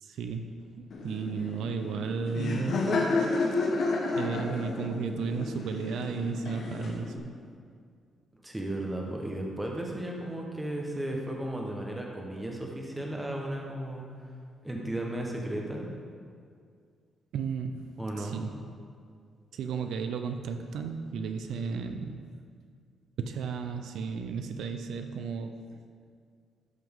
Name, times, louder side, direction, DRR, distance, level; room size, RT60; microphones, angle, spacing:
voice 1, 0.0-0.5 0.8-2.9 3.5-3.6 4.1-7.1 17.3-17.9 18.2-18.6 19.5-22.3 23.2-25.8, right 5 dB, 80° right, 6 dB, 0.5 m, -34 dB
Laughter, 0.9-7.2, left 3 dB, 55° left, 1.1 m, -31 dB
voice 2, 8.4-14.0 14.6-15.9 18.0-18.4, right 1 dB, 5° right, -1 dB, 1.1 m, -34 dB
12.5 x 6.1 x 3.6 m, 2.2 s
cardioid pair, 170°, 0 cm